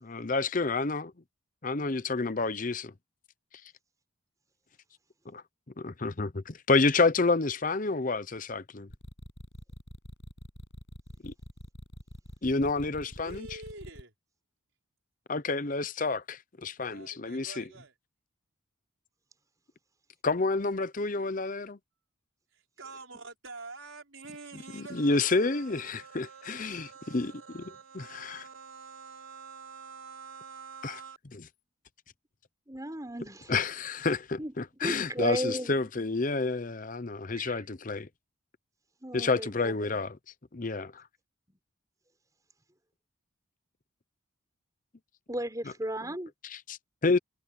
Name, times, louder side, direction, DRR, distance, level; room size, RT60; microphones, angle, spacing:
voice 1, 0.0-1.1 1.6-2.9 5.3-5.4 5.8-8.9 11.2-11.3 12.4-13.6 15.3-17.7 20.2-21.8 24.5-27.6 27.9-28.4 30.8-31.0 31.3-31.4 33.5-38.1 39.1-40.2 40.5-41.0 46.4-47.2, left 3 dB, 40° left, 0.7 m, -29 dB
sound 1, 8.9-14.0, equal, 60° left, 6.8 m, -45 dB
voice 2, 13.1-14.1 16.9-17.9 22.8-31.2, right 4 dB, 70° right, 5.1 m, -47 dB
voice 3, 32.7-33.5 34.4-34.5 34.8-35.8 37.3-37.6 39.0-39.9 45.3-46.3, right 1 dB, 15° right, 5.3 m, -35 dB
head